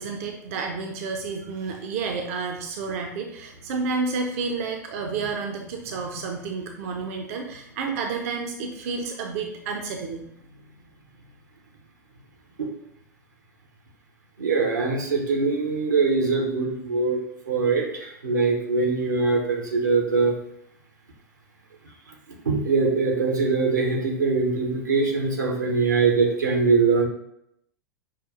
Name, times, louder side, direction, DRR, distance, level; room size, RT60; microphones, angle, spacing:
voice 1, 0.0-10.3, right 4 dB, 50° right, 3 dB, 0.5 m, -30 dB
voice 2, 14.4-17.2 17.5-20.3 22.5-27.0, right 4 dB, 75° right, 2 dB, 0.8 m, -22 dB
5.6 x 2.3 x 2.4 m, 0.75 s
figure-of-eight pair, 90°, 10 cm